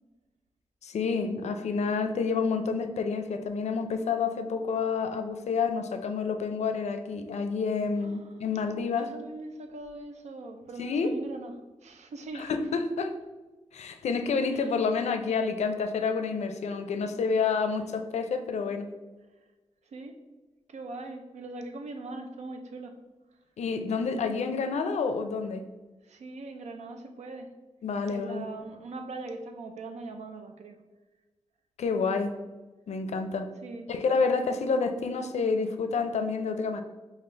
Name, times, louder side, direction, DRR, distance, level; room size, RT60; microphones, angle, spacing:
voice 1, 0.8-9.1 10.8-11.1 12.3-13.1 13.7-18.9 23.6-25.6 27.8-28.5 31.8-32.4 32.9-33.5 33.9-36.8, left 5 dB, 80° left, 8 dB, 0.4 m, -29 dB
voice 2, 8.0-8.4 9.0-12.5 14.5-14.8 19.8-20.2 20.7-23.0 26.0-27.5 28.1-30.8 33.6-33.9, right 2 dB, 85° right, 6 dB, 0.5 m, -41 dB
5.2 x 2.4 x 3.2 m, 1.2 s
wide cardioid pair, 110°, 11 cm